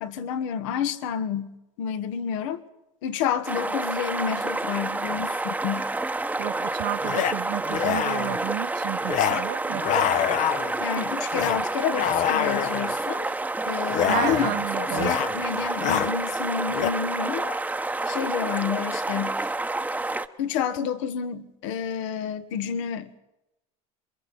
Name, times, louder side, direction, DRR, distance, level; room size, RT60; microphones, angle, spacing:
voice 1, 0.0-1.5 1.8-2.6 3.0-5.9 10.8-13.3 13.6-14.5 14.8-17.6 18.1-19.4 20.4-23.2, left 8 dB, 80° left, 1.4 m, -29 dB
sound 1, 3.5-20.3, right 2 dB, 10° right, 0.9 m, -29 dB
sound 2, 5.1-5.2 7.0-7.3 7.7-8.4 9.1-9.4 9.7-10.8 11.3-11.6 11.9-12.9 13.9-14.6 14.9-15.4 15.6-16.1 16.7-16.9, left 11 dB, 50° left, 0.9 m, -26 dB
voice 2, 6.4-10.1 14.0-15.1, right 20 dB, 65° right, 0.6 m, -32 dB
27.0 x 22.5 x 4.3 m
supercardioid pair, 95°, 16 cm